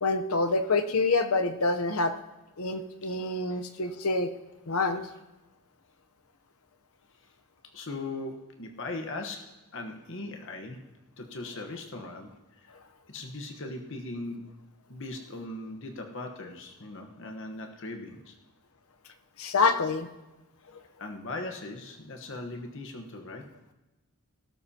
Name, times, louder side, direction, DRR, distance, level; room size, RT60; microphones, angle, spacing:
voice 1, 0.0-2.1 2.6-4.3 4.7-5.0 19.4-20.1, left 3 dB, 85° left, 7 dB, 0.9 m, -26 dB
voice 2, 7.7-10.8 11.2-12.8 13.1-14.6 14.9-18.4 21.0-23.5, left 2 dB, 60° left, 3 dB, 1.2 m, -39 dB
19.0 x 12.0 x 2.9 m, 1.0 s
head